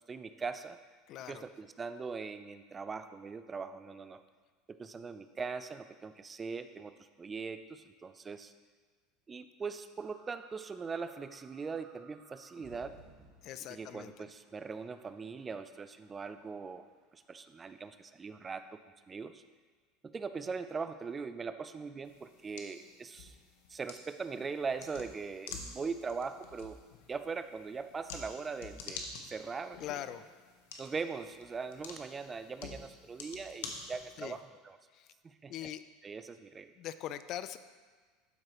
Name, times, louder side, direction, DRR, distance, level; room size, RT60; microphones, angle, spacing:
voice 1, 0.1-0.8 1.3-4.2 4.7-8.5 9.3-13.0 13.7-16.9 17.1-18.8 19.1-19.4 20.1-23.4 23.7-26.8 27.1-29.8 30.8-34.8 35.2-35.7 36.0-36.7, right 5 dB, 25° right, 11 dB, 0.4 m, -41 dB
voice 2, 1.1-1.5 13.4-14.3 29.8-30.3 34.2-34.4 34.9-35.1 35.5-35.8 36.8-37.6, left 11 dB, 55° left, 13 dB, 0.3 m, -42 dB
sound 1, 10.0-18.4, right 3 dB, 65° right, 1.4 m, -62 dB
sound 2, 22.0-34.4, left 4 dB, 80° left, 0.9 m, -49 dB
12.0 x 4.7 x 3.0 m, 1.5 s
supercardioid pair, 105°, 0 cm